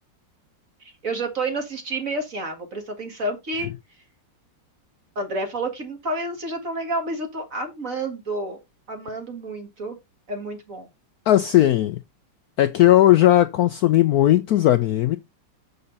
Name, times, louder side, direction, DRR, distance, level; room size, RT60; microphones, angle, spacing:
voice 1, 0.8-3.7 5.2-8.6 8.9-10.0 10.3-10.9, right 2 dB, 45° right, 2.2 m, -29 dB
voice 2, 11.3-12.0 12.6-15.2, left 13 dB, 70° left, 0.9 m, -17 dB
6.9 x 6.6 x 4.0 m
omnidirectional pair, 2.0 m